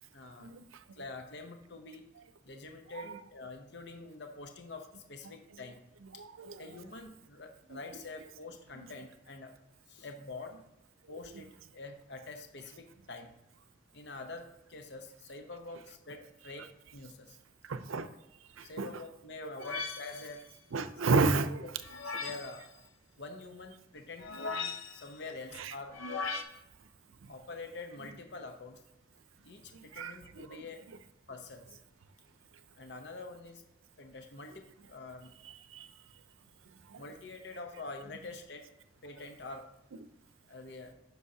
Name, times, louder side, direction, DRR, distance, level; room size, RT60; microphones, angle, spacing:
voice 1, 0.1-0.5 0.9-2.1 2.4-5.8 6.1-6.2 6.6-9.5 9.9-10.5 11.1-13.3 13.9-17.4 18.0-18.1 18.6-20.4 21.1-21.2 22.2-22.7 23.2-25.9 27.3-28.8 29.4-30.8 31.3-31.8 32.7-33.6 34.0-35.3 37.0-38.6 39.0-39.7 40.5-40.9, left 3 dB, 60° left, 5 dB, 0.8 m, -46 dB
voice 2, 6.1-6.6 7.7-7.8 8.7-8.9 17.6-18.1 18.6-18.9 20.7-21.5 22.1-22.2 25.5-25.7 29.7-30.6 35.4-35.9 36.9-37.0, right 3 dB, 90° right, 12 dB, 0.6 m, -32 dB
sound 1, 19.6-20.4 21.8-22.6 24.2-25.1 25.9-26.4, left 4 dB, 90° left, 0.8 m, -38 dB
10.0 x 6.3 x 2.8 m, 0.91 s
head